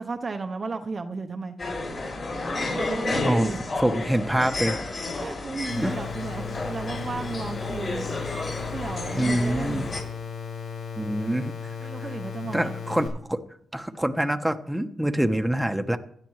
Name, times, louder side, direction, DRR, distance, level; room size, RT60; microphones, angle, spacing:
voice 1, 0.0-1.5 2.8-3.6 5.2-8.1 8.6-9.9 11.8-12.7, right 4 dB, 45° right, 6 dB, 0.9 m, -34 dB
sound 1, 1.6-10.0, left 2 dB, 55° left, 6.0 m, -31 dB
voice 2, 3.8-4.8 5.8-5.9 9.1-9.9 11.0-11.9 12.5-13.4 13.7-16.0, right 1 dB, 5° right, 7 dB, 1.1 m, -25 dB
sound 2, 5.7-13.1, left 6 dB, 85° left, 4.2 m, -36 dB
16.5 x 10.5 x 3.2 m, 0.65 s
cardioid pair, 60°, 0 cm